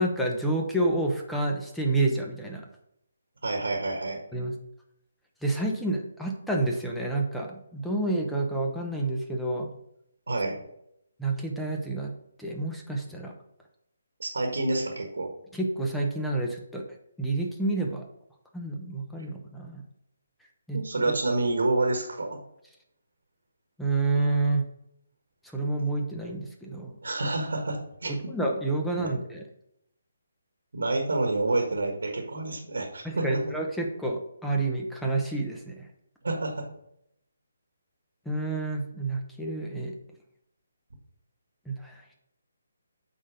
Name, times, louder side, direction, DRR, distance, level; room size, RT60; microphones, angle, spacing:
voice 1, 0.0-2.6 4.3-4.5 5.4-9.7 11.2-12.1 12.4-13.3 15.5-16.8 17.2-18.0 18.5-19.8 20.7-20.8 21.1-21.2 23.8-24.6 25.5-27.0 28.1-29.4 33.0-35.9 38.2-39.9 41.7-42.2, right 2 dB, 5° left, 0 dB, 1.0 m, -29 dB
voice 2, 3.4-4.2 10.3-10.6 14.2-15.3 20.7-22.4 27.0-28.3 29.0-29.1 30.7-33.4 36.2-36.7, right 2 dB, 80° right, 2 dB, 1.6 m, -28 dB
8.4 x 3.9 x 5.1 m, 0.76 s
hypercardioid pair, 155°, 0 cm